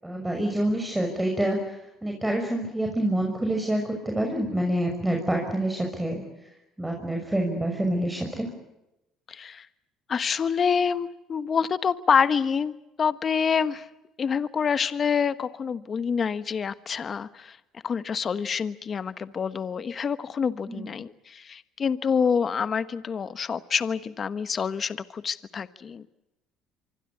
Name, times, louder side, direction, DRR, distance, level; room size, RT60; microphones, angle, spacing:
voice 1, 0.0-1.8 2.0-6.2 6.8-8.5 20.7-20.9, right 1 dB, 10° right, 2 dB, 6.0 m, -27 dB
voice 2, 9.3-9.7 10.1-13.8 14.2-17.6 17.8-26.1, left 6 dB, 40° left, 13 dB, 1.3 m, -27 dB
25.5 x 25.0 x 8.6 m, 0.93 s
supercardioid pair, 85°, 0 cm